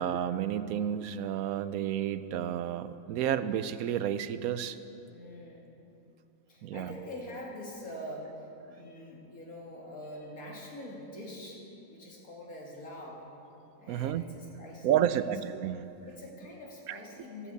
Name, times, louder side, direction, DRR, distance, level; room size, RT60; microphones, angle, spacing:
voice 1, 0.0-4.8 6.6-7.0 13.9-14.2 14.8-15.9 16.9-17.0, right 10 dB, 80° right, 13 dB, 1.0 m, -31 dB
voice 2, 5.1-5.7 6.5-13.3 13.8-15.4 16.0-17.5, left 1 dB, 75° left, -2 dB, 2.6 m, -44 dB
13.5 x 8.4 x 8.2 m, 2.8 s
omnidirectional pair, 1.5 m